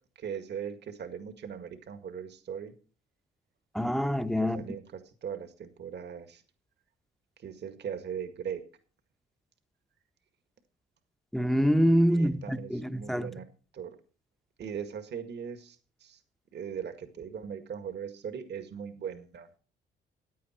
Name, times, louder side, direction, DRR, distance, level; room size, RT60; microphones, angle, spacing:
voice 1, 0.2-2.7 4.4-6.4 7.4-8.6 12.1-13.5 13.7-13.9 14.6-16.2 16.5-19.5, right 7 dB, 60° right, 1.9 m, -39 dB
voice 2, 3.7-4.6 11.3-13.3, equal, ahead, 0.9 m, -25 dB
15.5 x 9.6 x 4.4 m
cardioid pair, 90°, 20 cm